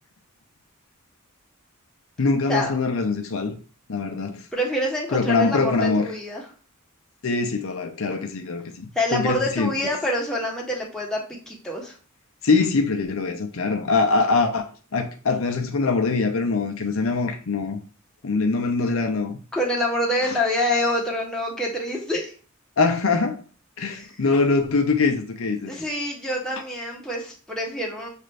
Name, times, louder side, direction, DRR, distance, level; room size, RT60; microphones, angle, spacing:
voice 1, 2.2-3.5 3.9-4.4 5.1-6.1 7.2-9.7 12.4-14.6 14.9-17.8 18.2-19.4 20.3-20.4 22.8-23.4 23.8-25.7, left 4 dB, 70° left, 0.6 m, -23 dB
voice 2, 4.5-6.4 8.9-11.9 19.5-22.3 23.9-24.1 25.7-28.1, left 1 dB, 5° left, 1.1 m, -26 dB
6.5 x 2.5 x 3.3 m
head